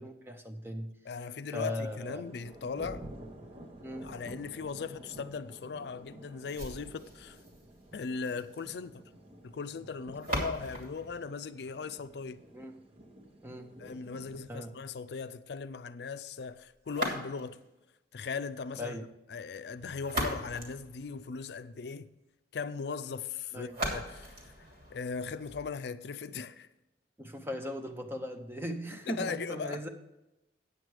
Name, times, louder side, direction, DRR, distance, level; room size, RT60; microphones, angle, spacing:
voice 1, 0.0-0.9 1.5-2.2 3.8-4.1 12.5-12.8 13.4-13.8 14.5-14.7 18.8-19.0 23.5-23.8 27.2-29.9, equal, 15° right, 0.8 m, -38 dB
voice 2, 1.0-3.0 4.0-7.4 7.9-9.0 9.4-12.4 13.8-17.6 18.1-22.1 22.5-26.7 29.1-29.9, left 5 dB, 65° left, 0.4 m, -39 dB
sound 1, 1.8-14.4, right 1 dB, 35° right, 1.1 m, -51 dB
sound 2, 6.5-12.5 16.8-17.7 19.7-21.7 23.7-25.7, equal, 55° right, 2.8 m, -40 dB
9.5 x 7.9 x 4.8 m
head